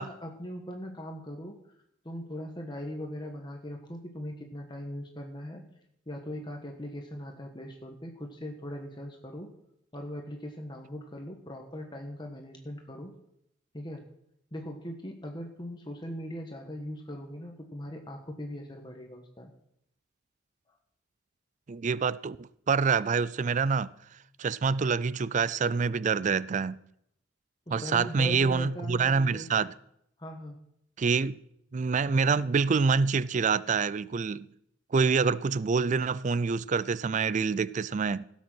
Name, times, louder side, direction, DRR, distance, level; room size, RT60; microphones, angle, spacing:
voice 1, 0.0-1.6 2.0-5.6 6.1-9.5 9.9-13.1 13.7-14.0 14.5-19.5 27.7-29.5 30.2-30.6, equal, 25° left, 1.3 m, -40 dB
voice 2, 21.7-23.9 24.4-26.8 27.7-29.7 31.0-31.4 31.7-34.5 34.9-38.3, right 5 dB, 40° right, 0.4 m, -26 dB
17.0 x 7.4 x 6.2 m
head